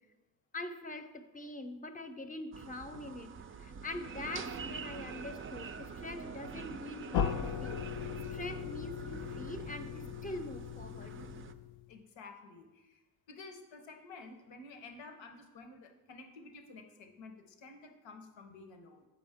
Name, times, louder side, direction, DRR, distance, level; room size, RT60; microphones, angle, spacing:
voice 1, 0.5-3.3 3.6-7.9 8.1-11.2, left 2 dB, 20° left, 8 dB, 0.6 m, -44 dB
sound 1, 2.5-11.5, right 5 dB, 30° right, 0.4 m, -45 dB
sound 2, 7.1-11.9, left 8 dB, 60° left, 0.5 m, -38 dB
voice 2, 11.9-19.1, left 3 dB, 85° left, 5 dB, 0.9 m, -52 dB
7.7 x 4.9 x 3.5 m, 1.1 s
cardioid pair, 70°, 43 cm